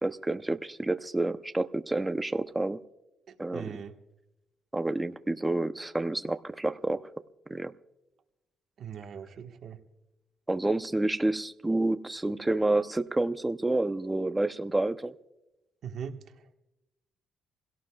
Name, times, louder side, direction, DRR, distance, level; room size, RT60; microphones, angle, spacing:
voice 1, 0.0-2.8 3.4-3.7 4.7-7.0 7.5-7.7 10.5-15.1, right 2 dB, 15° right, 11 dB, 0.7 m, -29 dB
voice 2, 3.3-3.9 8.8-9.8 15.8-16.5, right 7 dB, 65° right, 4 dB, 1.4 m, -41 dB
27.5 x 17.0 x 2.4 m, 0.95 s
cardioid pair, 90°, 0 cm